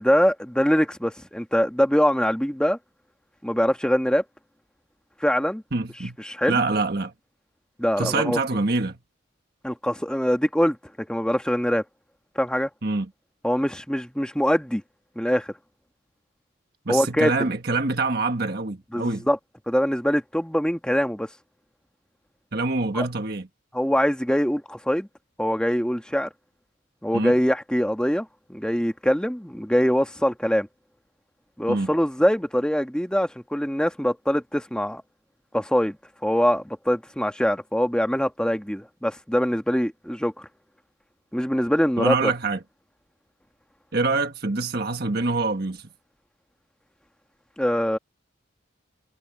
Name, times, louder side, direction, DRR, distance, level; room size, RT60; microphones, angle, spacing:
voice 1, 0.0-2.8 3.4-4.2 5.2-5.6 6.2-6.6 7.8-8.4 9.6-11.8 12.3-12.7 13.4-14.8 15.1-15.5 16.9-17.3 18.9-19.4 19.7-21.3 22.9-23.1 23.7-25.1 25.4-26.3 27.0-30.7 31.6-35.0 35.5-36.0 36.2-40.5 41.3-42.3 47.6-48.0, equal, 5° left, 1.4 m, -23 dB
voice 2, 5.7-6.2 6.5-7.1 8.0-9.0 12.8-13.1 16.8-19.3 22.5-23.5 27.1-27.4 31.7-31.9 42.0-42.6 43.9-45.9, right 3 dB, 50° right, 1.5 m, -25 dB
head